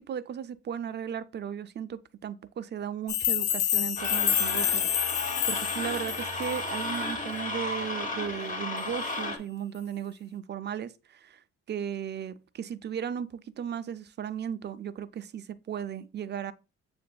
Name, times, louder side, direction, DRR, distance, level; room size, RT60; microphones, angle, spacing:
voice 1, 0.0-4.9 5.5-11.4 11.7-16.5, right 8 dB, 35° right, 0.4 m, -36 dB
sound 1, 3.1-7.0, left 11 dB, 90° left, 0.6 m, -28 dB
sound 2, 4.0-9.4, left 2 dB, 25° left, 1.0 m, -33 dB
7.4 x 2.5 x 2.2 m
cardioid pair, 90°, 30 cm